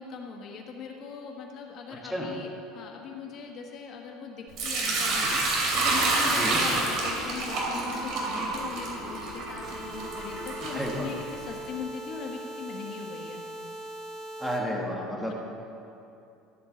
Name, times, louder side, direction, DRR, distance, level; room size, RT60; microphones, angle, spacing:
voice 1, 0.0-13.4, left 5 dB, 50° left, 1 dB, 1.2 m, -40 dB
Sink (filling or washing) / Liquid, 4.6-11.5, right 2 dB, 55° right, 2.7 m, -28 dB
sound 1, 9.6-14.6, right 1 dB, 30° right, 1.9 m, -40 dB
voice 2, 10.7-11.1 14.4-15.3, equal, 5° right, -1 dB, 1.4 m, -31 dB
13.5 x 4.5 x 7.6 m, 2.7 s
supercardioid pair, 125°, 0 cm